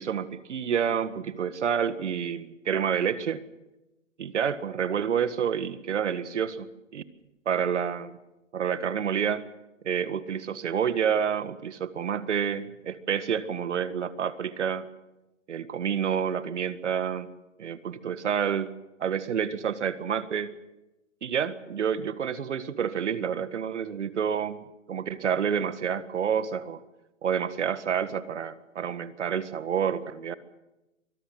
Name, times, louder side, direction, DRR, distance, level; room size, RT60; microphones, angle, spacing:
voice 1, 0.0-3.4 4.2-7.0 7.5-8.2 8.5-9.5 9.8-14.9 15.5-17.3 17.6-18.7 19.0-20.6 21.2-26.8 27.2-30.3, right 7 dB, 65° right, 14 dB, 1.8 m, -29 dB
24.5 x 18.5 x 7.8 m, 0.98 s
hypercardioid pair, 160°, 38 cm